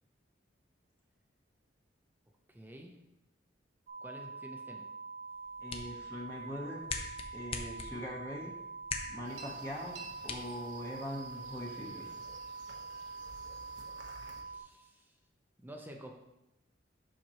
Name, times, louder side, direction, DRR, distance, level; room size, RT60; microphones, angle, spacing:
voice 1, 2.5-2.9 4.0-4.9 14.4-15.1 15.6-16.1, right 1 dB, 10° right, 2 dB, 0.6 m, -49 dB
sound 1, 3.9-14.6, right 4 dB, 40° right, 0.8 m, -45 dB
sound 2, 5.3-11.3, left 4 dB, 30° left, 0.6 m, -44 dB
voice 2, 5.6-6.8 7.3-8.5 9.1-10.0 10.2-12.0, left 1 dB, 15° left, -4 dB, 0.9 m, -42 dB
sound 3, 9.2-14.4, right 3 dB, 75° right, 1.0 m, -52 dB
7.6 x 5.8 x 2.9 m, 0.93 s
head